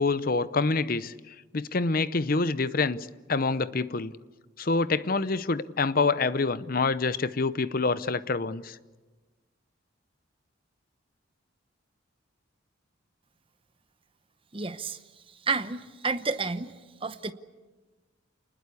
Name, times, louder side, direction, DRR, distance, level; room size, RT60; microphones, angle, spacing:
voice 1, 0.0-3.0 3.3-4.1 4.6-8.8, left 3 dB, 45° left, 16 dB, 0.7 m, -26 dB
voice 2, 14.5-15.0 15.5-16.7 17.0-17.3, right 4 dB, 25° right, 11 dB, 0.9 m, -30 dB
28.5 x 20.5 x 8.3 m, 1.3 s
head